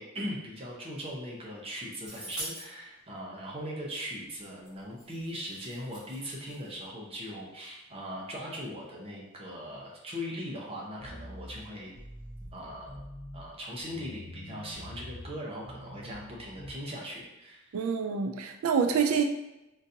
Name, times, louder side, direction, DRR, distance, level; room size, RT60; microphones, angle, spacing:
voice 1, 0.0-12.0 12.5-13.0 13.3-17.8, equal, 30° right, -2 dB, 0.7 m, -40 dB
sound 1, 2.1-2.7 4.7-4.8 5.0-6.7, right 1 dB, 5° right, 1.2 m, -43 dB
sound 2, 11.0-16.7, equal, 10° left, 0.9 m, -46 dB
voice 2, 17.7-19.2, right 6 dB, 85° right, 5 dB, 0.3 m, -27 dB
3.8 x 2.7 x 2.7 m, 0.93 s
head